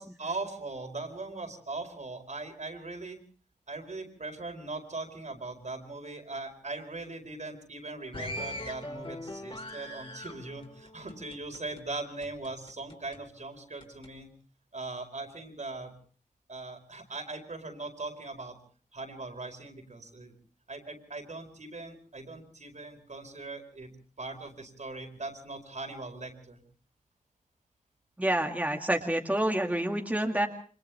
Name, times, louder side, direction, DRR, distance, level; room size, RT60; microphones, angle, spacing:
voice 1, 0.0-3.2 3.7-14.3 14.7-15.9 16.5-18.6 18.9-20.3 20.7-23.9 24.2-26.6, right 3 dB, 60° right, 4 dB, 4.7 m, -40 dB
sound 1, 8.1-11.8 12.2-13.2 13.8-14.1, left 1 dB, 40° left, 5.3 m, -41 dB
voice 2, 28.2-30.5, right 1 dB, 10° right, 2 dB, 2.2 m, -28 dB
29.5 x 25.5 x 3.5 m, 0.43 s
wide cardioid pair, 85°, 14 cm